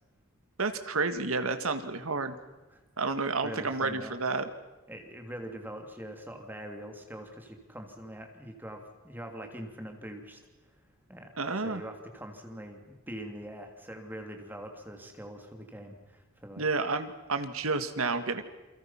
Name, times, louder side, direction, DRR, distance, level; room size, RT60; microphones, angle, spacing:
voice 1, 0.6-2.3 3.0-4.5 11.4-11.8 16.6-18.4, right 3 dB, 75° right, 9 dB, 1.8 m, -30 dB
voice 2, 3.4-4.2 4.9-10.4 11.1-16.7, right 1 dB, 10° right, 3 dB, 3.0 m, -43 dB
29.0 x 24.0 x 5.9 m, 1.1 s
head